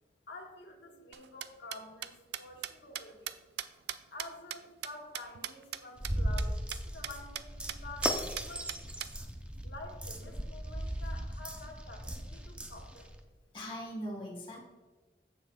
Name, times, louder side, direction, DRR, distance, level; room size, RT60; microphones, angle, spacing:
voice 1, 0.3-3.3 4.1-8.8 9.6-13.2, left 2 dB, 85° left, 1 dB, 1.3 m, -49 dB
sound 1, 1.1-5.8 6.0-6.1 6.4-6.5 6.7-6.8 7.0-7.4 7.7-7.8 8.0-9.1, right 11 dB, 65° right, 0.4 m, -39 dB
sound 2, 6.0-13.2, equal, 5° right, 0.5 m, -37 dB
voice 2, 13.5-14.6, equal, 30° left, -1 dB, 1.3 m, -40 dB
16.0 x 5.9 x 2.3 m, 1.3 s
head